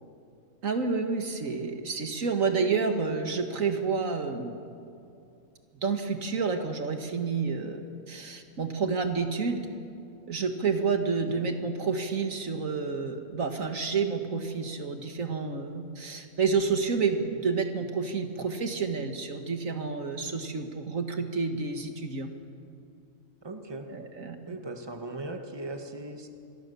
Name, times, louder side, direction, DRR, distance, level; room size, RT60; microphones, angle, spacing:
voice 1, 0.6-4.6 5.8-9.7 10.3-22.3 23.9-24.6, right 5 dB, 75° right, 6 dB, 2.1 m, -29 dB
voice 2, 23.4-23.9 24.5-26.3, right 2 dB, 20° right, 5 dB, 1.7 m, -38 dB
27.0 x 23.0 x 7.0 m, 2.6 s
omnidirectional pair, 1.4 m